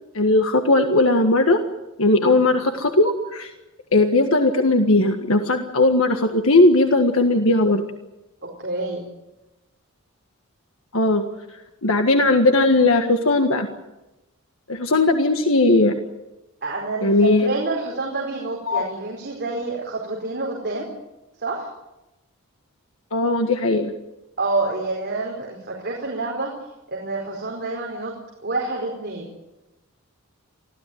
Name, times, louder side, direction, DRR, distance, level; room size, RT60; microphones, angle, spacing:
voice 1, 0.2-1.6 2.0-3.5 3.9-7.8 10.9-11.2 11.8-13.7 14.7-15.9 17.0-17.5 18.7-18.8 23.1-23.9, left 2 dB, 65° left, 5 dB, 1.7 m, -18 dB
voice 2, 8.4-9.1 16.6-20.9 21.4-21.7 24.4-26.5 26.9-28.1 28.4-29.3, right 3 dB, 50° right, -1 dB, 4.6 m, -28 dB
25.0 x 16.5 x 9.4 m, 1.0 s
head